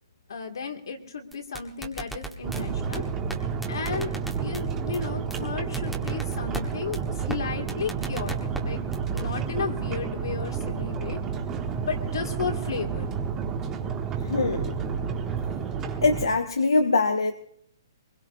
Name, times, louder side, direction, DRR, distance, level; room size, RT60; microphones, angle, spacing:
voice 1, 0.3-3.0 3.7-4.1 4.4-8.3 8.6-8.8 9.1-11.2 11.9-13.1, left 5 dB, 70° left, 4 dB, 2.2 m, -33 dB
sound 1, 1.3-2.6 2.9-3.0 3.3-3.4 3.6-4.6 4.9-5.0 5.3-5.4 5.7-6.6 6.9-7.0 7.3-7.4 7.7-8.6 8.9-9.2, right 3 dB, ahead, 1.4 m, -34 dB
sound 2, 2.4-16.3, right 6 dB, 20° right, 1.4 m, -30 dB
voice 2, 14.3-14.7 16.0-17.3, left 3 dB, 90° left, 6 dB, 0.9 m, -23 dB
22.5 x 21.0 x 2.7 m, 0.68 s
hypercardioid pair, 140°, 2 cm